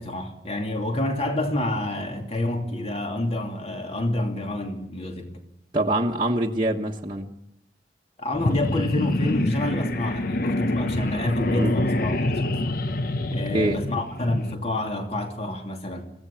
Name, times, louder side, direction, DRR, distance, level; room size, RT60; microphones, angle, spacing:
voice 1, 0.0-5.4 8.2-12.8 13.3-16.0, left 1 dB, 35° left, 2.7 m, -28 dB
voice 2, 5.7-7.3 11.6-11.7 13.3-13.8, right 1 dB, 25° right, 1.3 m, -24 dB
sound 1, 8.3-14.5, left 1 dB, 55° left, 1.0 m, -26 dB
24.5 x 16.0 x 7.2 m
head